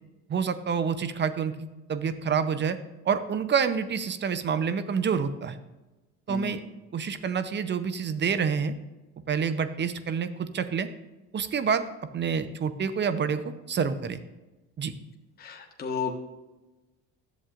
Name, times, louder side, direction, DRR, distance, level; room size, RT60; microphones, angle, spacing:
voice 1, 0.3-1.5 1.9-2.8 3.0-5.6 6.3-6.6 6.9-8.8 9.3-10.9 11.3-11.8 12.1-14.2 14.8-14.9, right 6 dB, 30° right, 12 dB, 0.7 m, -27 dB
voice 2, 6.3-6.6 15.4-16.2, left 6 dB, 25° left, 2 dB, 1.1 m, -33 dB
11.0 x 7.3 x 2.5 m, 1.1 s
supercardioid pair, 85°, 35 cm